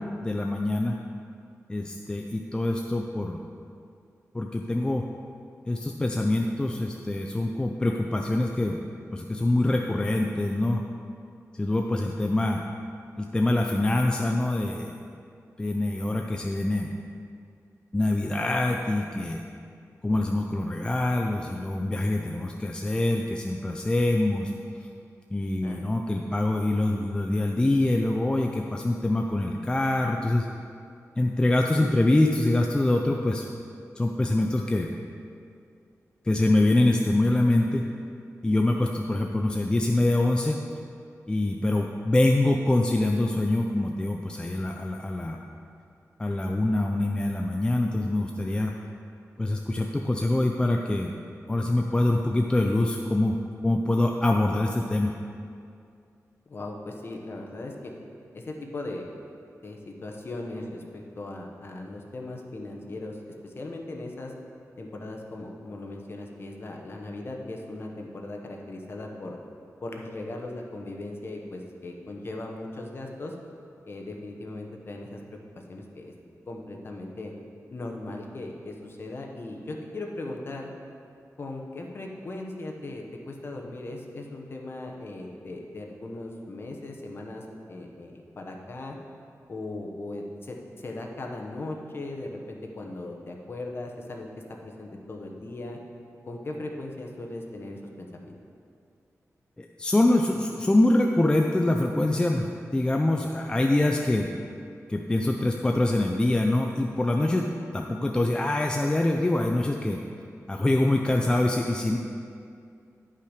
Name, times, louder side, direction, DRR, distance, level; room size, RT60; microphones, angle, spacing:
voice 1, 0.2-0.9 1.7-3.4 4.3-5.0 5.7-8.8 9.1-10.8 11.5-12.6 13.2-15.0 15.6-16.9 17.9-19.4 20.0-24.5 25.3-30.5 31.2-33.5 34.0-34.9 36.3-37.9 38.4-40.6 41.3-45.4 46.2-48.7 49.4-51.1 51.5-55.1 99.6-104.3 104.9-107.5 107.7-110.0 110.5-112.0, left 1 dB, 15° left, 2 dB, 0.4 m, -24 dB
voice 2, 56.5-57.9 58.3-59.1 59.6-64.3 64.8-69.4 69.8-73.3 73.8-75.2 75.7-76.1 76.5-77.3 77.7-80.7 81.4-89.0 89.5-94.3 94.6-95.8 96.2-98.4, left 2 dB, 40° left, 1 dB, 0.9 m, -38 dB
10.5 x 5.6 x 4.9 m, 2.4 s
wide cardioid pair, 180°, 6 cm